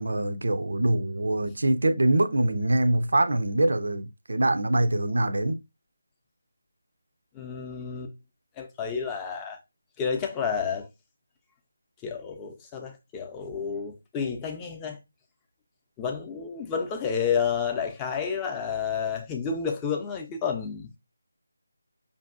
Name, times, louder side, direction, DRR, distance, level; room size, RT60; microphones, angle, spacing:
voice 1, 0.0-5.6, right 1 dB, 70° right, 0.4 m, -24 dB
voice 2, 7.3-8.1 8.6-9.6 10.0-10.9 12.0-15.0 16.0-20.9, left 6 dB, 10° left, 0.5 m, -30 dB
5.2 x 2.6 x 2.5 m
figure-of-eight pair, 165°, 0 cm